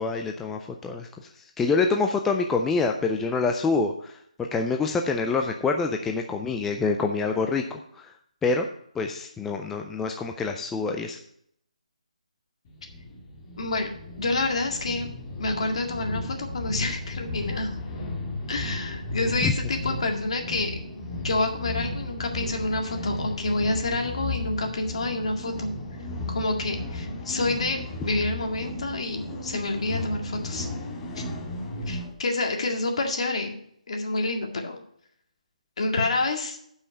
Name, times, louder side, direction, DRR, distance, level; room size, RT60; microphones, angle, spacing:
voice 1, 0.0-8.1 8.4-8.7 8.9-11.2 19.4-19.5, left 4 dB, 5° left, 3 dB, 0.3 m, -26 dB
sound 1, 12.6-32.1, left 1 dB, 25° left, 1.8 m, -34 dB
voice 2, 13.6-13.9 14.2-15.1 15.4-17.8 18.5-20.7 21.2-25.7 26.3-30.7 31.2-31.3 31.9-33.6 33.9-34.8 35.8-36.6, left 2 dB, 50° left, 3 dB, 2.0 m, -28 dB
9.8 x 5.6 x 6.0 m, 0.68 s
hypercardioid pair, 170°, 4 cm